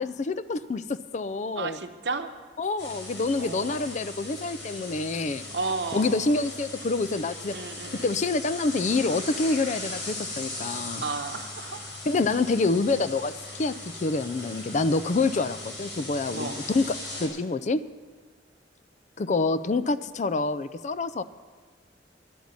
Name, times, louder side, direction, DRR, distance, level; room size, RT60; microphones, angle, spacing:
voice 1, 0.0-1.8 2.6-5.4 5.9-7.5 7.9-11.0 12.1-17.8 19.2-21.2, left 3 dB, 40° left, 14 dB, 0.4 m, -27 dB
voice 2, 1.6-2.3 3.4-3.9 5.5-6.4 7.5-8.1 11.0-11.9 16.3-16.6, right 4 dB, 70° right, 7 dB, 0.9 m, -33 dB
sound 1, 2.8-17.3, left 2 dB, 90° left, 4.3 m, -38 dB
11.0 x 8.2 x 9.5 m, 1.5 s
head